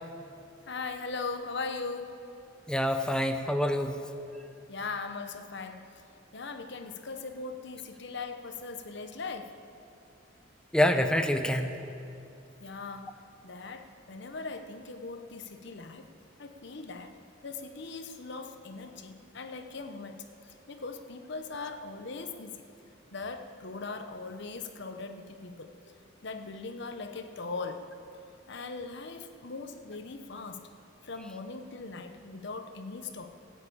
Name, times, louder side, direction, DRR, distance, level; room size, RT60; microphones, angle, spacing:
voice 1, 0.7-2.2 4.7-6.1 6.3-9.5 12.6-16.1 16.4-17.2 17.4-22.6 23.1-25.7 26.2-27.9 28.5-30.7 31.0-33.3, left 4 dB, 65° left, 8 dB, 1.0 m, -40 dB
voice 2, 2.7-4.0 10.7-11.8, left 1 dB, 5° left, 6 dB, 0.7 m, -26 dB
14.5 x 8.7 x 8.7 m, 2.6 s
head